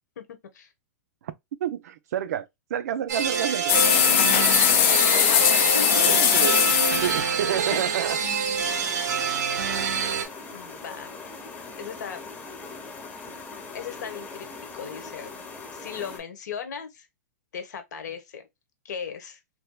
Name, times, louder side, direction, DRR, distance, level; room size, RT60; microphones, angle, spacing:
voice 1, 1.6-3.8 6.0-6.6 7.0-8.2, right 10 dB, 65° right, 0.5 m, -29 dB
sound 1, 3.1-10.2, right 7 dB, 90° right, 0.8 m, -26 dB
sound 2, 3.7-8.6, left 11 dB, 40° left, 0.4 m, -21 dB
voice 2, 5.1-6.1 8.7-8.9 10.5-11.1 11.8-12.2 13.7-14.5 14.7-15.4 15.7-17.1 17.5-18.5 18.8-19.4, left 7 dB, 80° left, 1.0 m, -37 dB
sound 3, 8.6-16.2, left 4 dB, 20° left, 0.9 m, -41 dB
3.4 x 2.7 x 2.2 m
supercardioid pair, 165°, 9 cm